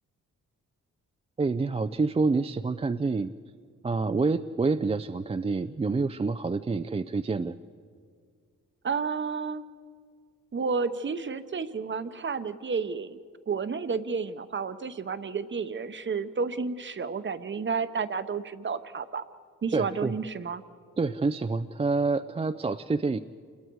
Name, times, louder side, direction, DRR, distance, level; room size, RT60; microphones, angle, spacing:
voice 1, 1.4-3.3 3.8-7.5 19.7-20.1 21.0-23.2, right 3 dB, 20° right, 9 dB, 0.4 m, -27 dB
voice 2, 8.8-9.6 10.5-13.2 13.5-19.2 19.6-20.6, right 5 dB, 40° right, 11 dB, 0.9 m, -31 dB
28.0 x 21.0 x 4.7 m, 2.1 s
cardioid pair, 90°, 30 cm